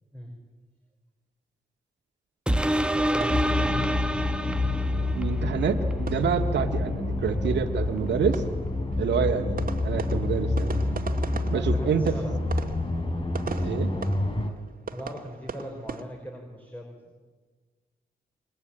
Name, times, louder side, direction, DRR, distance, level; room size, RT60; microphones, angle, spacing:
sound 1, 2.5-5.4 5.9-6.0, right 1 dB, 5° right, 1.2 m, -27 dB
voice 1, 2.9-3.8 11.5-12.4 14.9-17.2, equal, 10° left, 1 dB, 5.7 m, -39 dB
sound 2, 3.2-4.3 4.6-4.7 5.0-5.1 5.4-6.9 7.1-7.3 7.5-16.0, right 5 dB, 50° right, 2.2 m, -40 dB
sound 3, 3.3-14.5, left 2 dB, 30° left, 3.8 m, -28 dB
voice 2, 5.2-8.4 9.0-10.7 11.5-12.2 13.6-13.9, right 6 dB, 85° right, 4 dB, 2.0 m, -27 dB
27.0 x 22.5 x 9.0 m, 1.4 s
cardioid pair, 75°, 18 cm